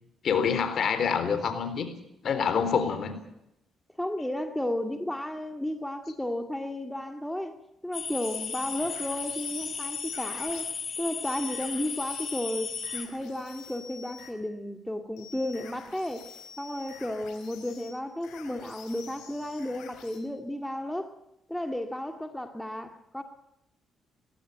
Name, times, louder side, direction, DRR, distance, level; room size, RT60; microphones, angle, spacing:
voice 1, 0.2-1.9 2.2-3.2, left 6 dB, 60° left, 3.9 m, -26 dB
voice 2, 4.0-7.5 7.8-10.7 11.0-16.3 16.6-21.1 21.5-23.2, left 1 dB, 5° left, 2.1 m, -33 dB
sound 1, 7.9-13.1, left 5 dB, 45° left, 3.6 m, -35 dB
sound 2, 8.2-10.7 11.2-14.4 15.2-20.2, left 7 dB, 90° left, 4.4 m, -49 dB
20.0 x 17.0 x 9.0 m
cardioid pair, 90°, 0 cm